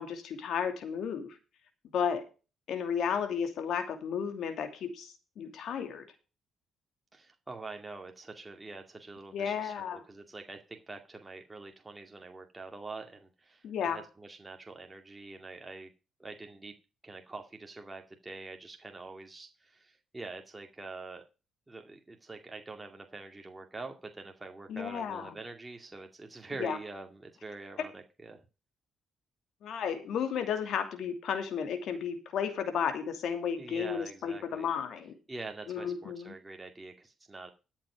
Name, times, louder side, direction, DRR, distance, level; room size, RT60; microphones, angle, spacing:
voice 1, 0.0-1.4 1.9-2.3 2.7-6.1 9.3-10.0 13.6-14.0 24.7-25.3 26.6-26.8 29.6-35.2 35.7-36.4, left 7 dB, 70° left, 7 dB, 2.8 m, -33 dB
voice 2, 7.1-15.9 16.2-16.7 17.0-21.2 21.7-28.4 33.6-34.7 35.3-37.5, right 3 dB, 20° right, 3 dB, 2.2 m, -45 dB
13.5 x 7.5 x 5.0 m, 0.32 s
cardioid pair, 90°, 0 cm